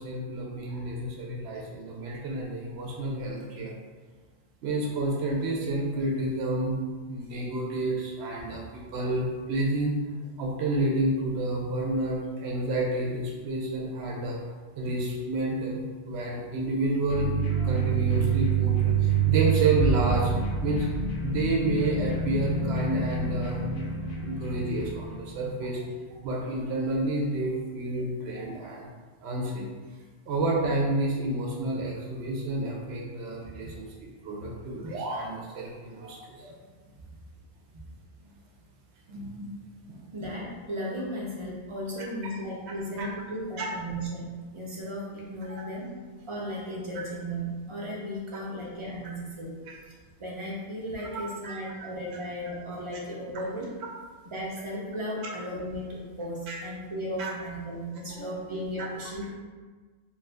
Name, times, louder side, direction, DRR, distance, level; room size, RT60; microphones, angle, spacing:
voice 1, 0.0-3.7 4.6-6.8 7.1-10.0 10.4-14.4 14.8-17.3 17.6-20.3 20.6-20.9 21.2-23.9 24.2-28.9 29.2-29.7 30.3-36.5 39.1-39.6 39.9-40.0 43.0-43.1 43.6-43.7 51.0-51.1 51.4-51.5 56.5-56.6 57.2-57.3 58.1-58.2, right 2 dB, 75° right, -3 dB, 0.8 m, -30 dB
sound 1, 17.1-25.4, right 6 dB, 60° left, 0.6 m, -27 dB
voice 2, 40.1-45.9 46.3-49.6 50.2-53.7 54.2-59.3, equal, 35° right, -4 dB, 0.6 m, -35 dB
2.6 x 2.5 x 3.3 m, 1.4 s
omnidirectional pair, 1.1 m